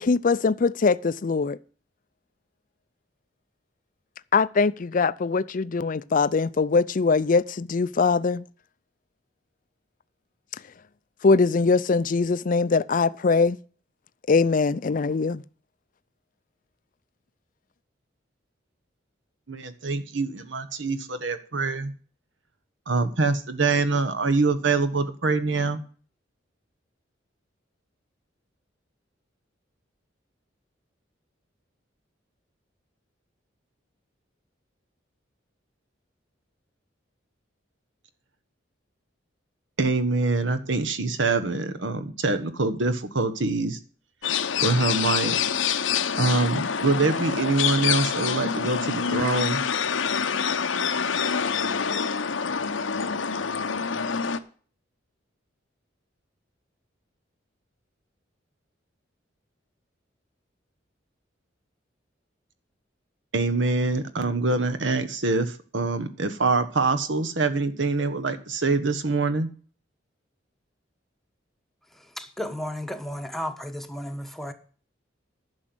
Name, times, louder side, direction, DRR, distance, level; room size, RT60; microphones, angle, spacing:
voice 1, 0.0-1.6 4.3-8.4 11.2-13.6 14.3-15.4, left 4 dB, 45° left, 0.5 m, -22 dB
voice 2, 19.5-21.9 22.9-25.8 39.8-43.8 44.6-45.4 46.2-49.6 63.3-69.5, right 3 dB, 75° right, 1.3 m, -25 dB
sound 1, 44.2-54.4, left 7 dB, 90° left, 0.8 m, -26 dB
voice 3, 72.2-74.5, left 1 dB, ahead, 1.0 m, -33 dB
11.0 x 6.4 x 7.8 m
head